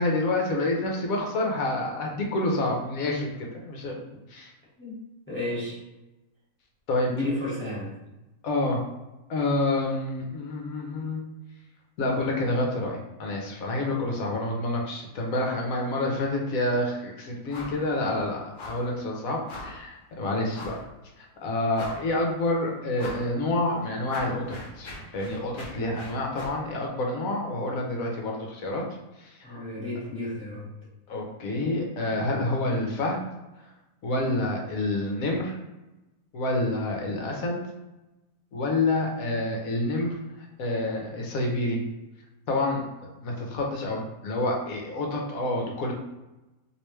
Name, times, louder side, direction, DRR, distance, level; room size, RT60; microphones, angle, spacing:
voice 1, 0.0-3.9 4.3-4.5 6.9-7.1 8.4-8.8 9.3-11.2 12.0-18.4 18.6-20.8 21.2-28.8 29.2-29.6 31.1-33.2 34.0-35.6 36.3-37.6 38.5-40.2 40.6-41.8 42.5-42.8 43.2-45.9, left 2 dB, 70° left, 0 dB, 1.1 m, -28 dB
voice 2, 5.3-5.8 7.1-8.0 29.4-30.7, left 1 dB, 10° left, -8 dB, 1.1 m, -32 dB
sound 1, 17.5-17.8 18.1-18.2 18.6-18.9 19.5-19.8 20.5-20.9 21.3-21.4 21.7-22.3 23.0-23.3 23.7-26.6, left 2 dB, 50° left, 0.6 m, -41 dB
3.2 x 2.9 x 3.1 m, 1.0 s
omnidirectional pair, 1.6 m